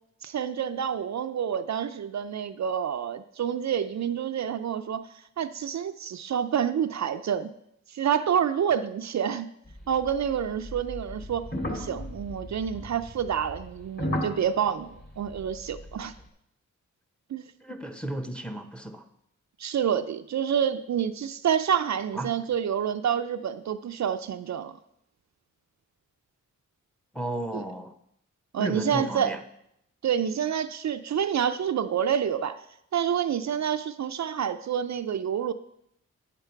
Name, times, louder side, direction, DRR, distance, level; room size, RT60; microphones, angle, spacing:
voice 1, 0.2-5.1 5.4-7.5 7.9-9.5 9.9-16.1 17.3-17.4 19.6-24.8 27.5-27.6 28.5-29.3 30.0-32.6 32.9-35.5, right 8 dB, 65° right, 0.5 m, -28 dB
sound 1, 9.7-16.2, left 1 dB, 30° left, 2.5 m, -36 dB
voice 2, 17.6-19.1 22.1-22.3 27.1-27.9 28.6-29.4, right 1 dB, 5° left, 0.9 m, -33 dB
9.0 x 6.9 x 4.5 m
cardioid pair, 65°, 31 cm